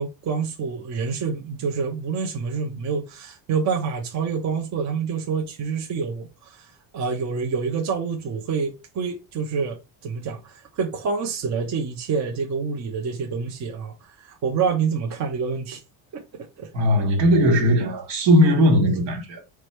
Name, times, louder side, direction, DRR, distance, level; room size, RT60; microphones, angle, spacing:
voice 1, 0.0-9.8 10.0-15.8 16.1-16.2 16.6-16.7, right 5 dB, 40° right, 0.7 m, -27 dB
voice 2, 16.7-19.4, equal, 75° right, 1.7 m, -18 dB
4.8 x 2.1 x 4.5 m
cardioid pair, 170°, 45 cm